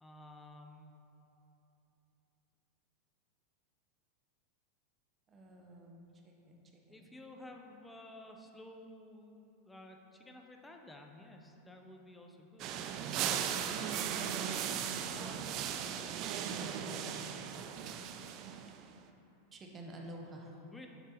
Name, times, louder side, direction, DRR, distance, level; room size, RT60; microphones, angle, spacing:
voice 1, 0.0-0.9 6.9-12.8 13.7-17.5 20.5-20.9, left 1 dB, 10° left, 2 dB, 0.7 m, -53 dB
voice 2, 5.3-6.6 6.9-7.2 13.9-14.2 19.5-20.6, right 1 dB, 25° right, 1 dB, 1.0 m, -50 dB
sound 1, 12.6-18.9, right 8 dB, 50° right, 0.4 m, -37 dB
8.0 x 5.8 x 3.0 m, 2.9 s
hypercardioid pair, 105°, 0 cm